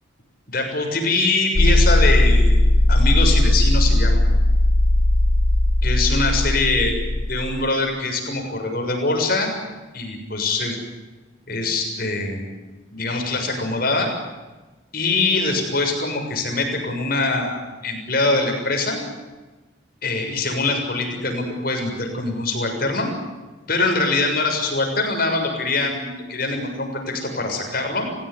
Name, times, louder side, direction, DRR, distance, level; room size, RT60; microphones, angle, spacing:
voice 1, 0.5-2.6 2.9-4.2 5.8-7.0 7.3-9.5 9.9-10.8 11.5-12.5 12.9-14.1 14.9-19.0 20.0-23.1 23.7-28.1, left 3 dB, 50° left, 3 dB, 7.0 m, -23 dB
sound 1, 1.6-7.7, left 1 dB, 70° left, 1.0 m, -17 dB
30.0 x 16.5 x 9.8 m, 1.2 s
head